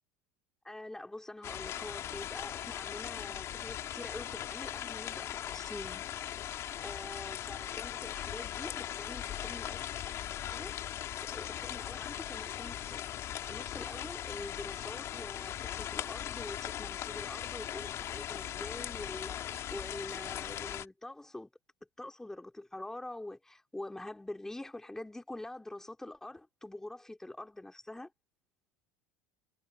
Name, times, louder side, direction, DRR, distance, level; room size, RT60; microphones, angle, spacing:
voice 1, 0.6-6.1 6.3-9.8 10.5-10.7 11.2-21.5 22.0-28.1, left 1 dB, 5° left, 2.8 m, -45 dB
sound 1, 1.4-20.9, left 11 dB, 45° left, 2.9 m, -39 dB
supercardioid pair, 105°, 7 cm